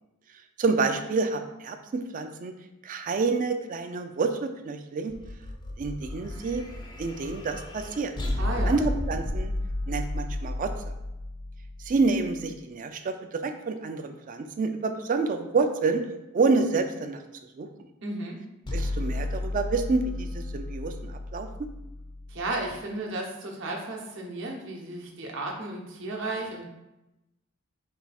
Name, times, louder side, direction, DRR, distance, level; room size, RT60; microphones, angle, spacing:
voice 1, 0.6-2.5 2.8-5.1 5.8-6.6 7.0-8.1 8.7-9.5 9.9-10.7 11.8-16.0 16.3-17.2 17.6-17.7 18.7-21.5, right 4 dB, 40° right, 7 dB, 0.4 m, -28 dB
sound 1, 5.1-12.4 18.7-22.8, left 1 dB, 20° left, 0.4 m, -33 dB
voice 2, 8.4-8.8 18.0-18.4 22.3-26.6, right 2 dB, 65° right, -1 dB, 0.9 m, -34 dB
4.4 x 2.3 x 4.2 m, 0.95 s
head